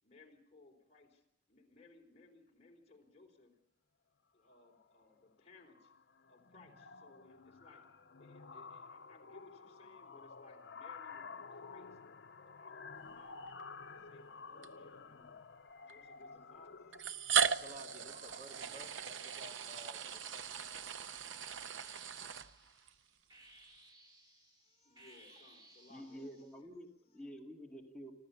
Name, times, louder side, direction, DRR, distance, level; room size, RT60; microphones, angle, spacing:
voice 1, 0.0-3.5 4.3-5.9 6.3-7.8 8.2-12.1 12.4-13.6 13.9-15.4 15.8-17.3 24.6-26.7, left 2 dB, 35° left, 0 dB, 4.2 m, -63 dB
sound 1, 4.5-4.8 5.1-5.4 5.7-20.5, left 4 dB, 75° left, 0.8 m, -53 dB
sound 2, 13.5-13.6 14.6-14.7 15.9-16.0 16.9-22.9, right 7 dB, 90° right, 0.7 m, -37 dB
voice 2, 17.6-20.0 20.3-20.8, right 1 dB, 45° right, 2 dB, 2.5 m, -54 dB
sound 3, 21.6-26.6, right 1 dB, 20° right, 2.5 m, -63 dB
voice 3, 25.9-28.1, equal, 5° left, -3 dB, 2.2 m, -49 dB
26.5 x 14.0 x 7.1 m, 0.82 s
head